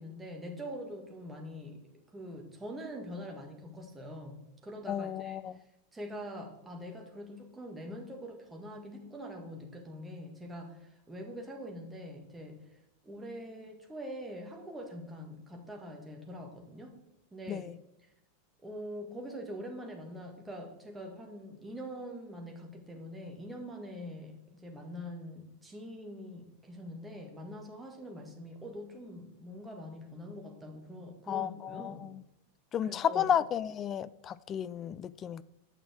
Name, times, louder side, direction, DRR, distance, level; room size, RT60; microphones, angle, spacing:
voice 1, 0.0-1.8 2.1-5.4 5.9-12.6 13.0-17.0 17.3-17.7 18.6-32.1 32.8-33.3, equal, 10° right, 1.7 m, -44 dB
voice 2, 4.9-5.5 17.5-17.7 31.3-32.2 32.7-35.4, left 9 dB, 30° left, 0.3 m, -32 dB
9.0 x 6.0 x 4.6 m
figure-of-eight pair, 90°, 0 cm